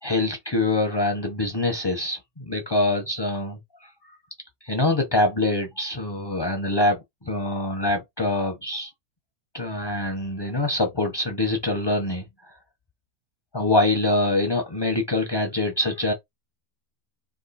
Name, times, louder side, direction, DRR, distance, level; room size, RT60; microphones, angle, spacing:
voice 1, 0.0-4.1 4.6-8.9 9.5-12.2 13.5-16.1, left 2 dB, 25° left, 0.6 m, -24 dB
3.6 x 2.9 x 4.1 m
omnidirectional pair, 1.8 m